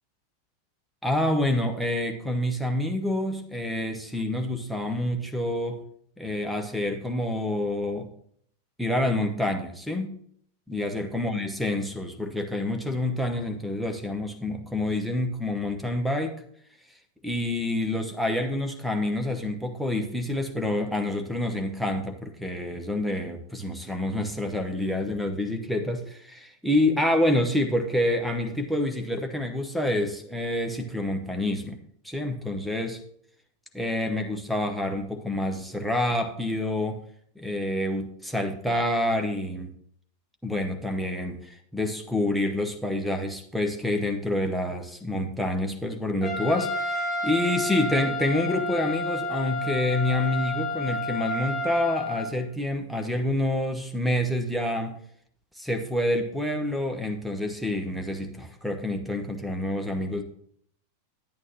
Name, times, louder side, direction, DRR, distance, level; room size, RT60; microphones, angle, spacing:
voice 1, 1.0-5.8 6.2-8.1 8.8-10.1 10.7-16.4 17.2-33.0 33.7-37.0 37.3-39.7 40.4-54.9 55.5-60.2, left 1 dB, ahead, 4 dB, 1.1 m, -27 dB
Trumpet, 46.2-52.3, left 1 dB, 20° left, 2.1 m, -30 dB
11.0 x 8.8 x 2.9 m, 0.65 s
figure-of-eight pair, 90°, 0 cm